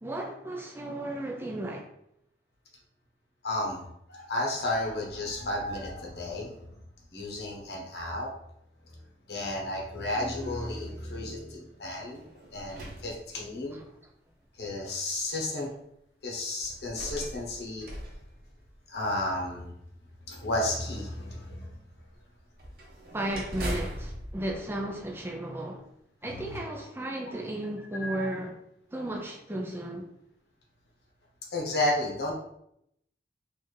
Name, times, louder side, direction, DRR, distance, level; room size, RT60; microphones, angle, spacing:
voice 1, 0.0-1.9 13.7-13.9 23.1-25.9 26.2-28.6 28.9-30.1, right 1 dB, 10° right, 0.5 m, -34 dB
voice 2, 3.4-3.8 4.1-6.5 7.1-8.3 9.3-12.2 12.5-13.8 14.6-15.7 16.2-17.9 18.9-19.7 20.3-21.8 26.3-26.6 28.0-28.3 31.5-32.3, left 1 dB, 65° left, 0.9 m, -32 dB
sound 1, 11.9-13.9 14.6-14.7 16.6-19.2 22.5-25.6, right 1 dB, 50° right, 0.9 m, -40 dB
4.0 x 2.6 x 3.2 m
head